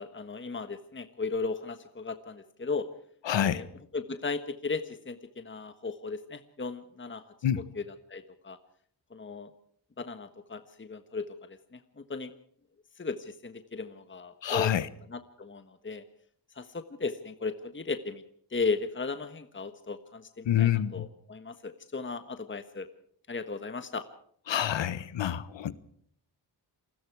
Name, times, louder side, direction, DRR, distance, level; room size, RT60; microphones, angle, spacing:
voice 1, 0.0-2.9 3.4-3.7 3.9-7.2 7.8-8.6 9.1-9.5 10.0-12.3 13.0-14.7 15.1-16.0 16.5-18.2 18.5-22.9 23.3-24.0, left 4 dB, 25° left, 1.4 m, -36 dB
voice 2, 3.2-3.7 7.4-7.6 14.4-14.9 20.4-21.1 24.5-25.7, left 10 dB, 90° left, 1.3 m, -27 dB
28.0 x 21.0 x 4.8 m
cardioid pair, 90°, 43 cm